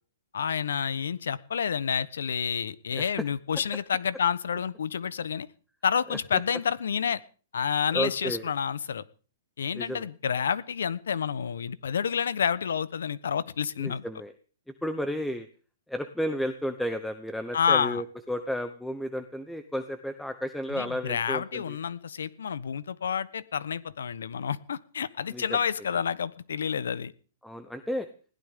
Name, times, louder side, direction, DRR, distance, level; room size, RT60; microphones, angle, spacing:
voice 1, 0.3-5.5 5.8-7.2 7.5-9.0 9.6-14.0 17.5-18.0 20.7-27.1, left 7 dB, 85° left, 17 dB, 1.1 m, -29 dB
voice 2, 7.9-8.5 9.7-10.1 13.8-14.3 14.8-15.5 15.9-21.8 25.3-25.4 27.4-28.1, equal, ahead, 9 dB, 0.9 m, -32 dB
21.0 x 16.0 x 3.8 m, 0.40 s
hypercardioid pair, 160°, 0 cm